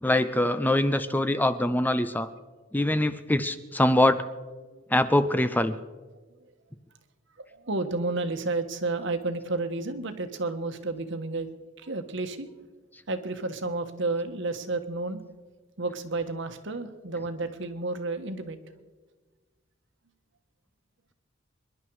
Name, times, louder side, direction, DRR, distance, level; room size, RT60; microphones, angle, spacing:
voice 1, 0.0-2.3 2.7-4.2 4.9-5.8, left 1 dB, 10° left, 12 dB, 0.5 m, -23 dB
voice 2, 7.4-11.5 11.8-12.5 13.1-15.2 15.8-18.6, right 3 dB, 70° right, 8 dB, 1.4 m, -31 dB
25.5 x 11.5 x 4.8 m, 1.3 s
head